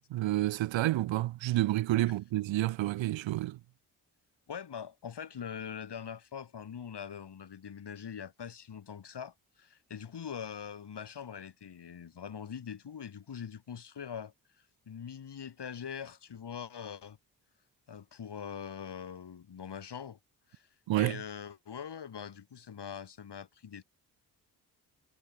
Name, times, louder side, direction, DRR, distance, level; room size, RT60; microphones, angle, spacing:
voice 1, 0.1-3.6 20.9-21.2, right 16 dB, 65° right, 1.0 m, -29 dB
voice 2, 4.5-14.3 14.9-17.2 17.9-20.2 20.5-20.7 21.0-23.8, left 7 dB, 55° left, 6.4 m, -43 dB
hypercardioid pair, 40°, 48 cm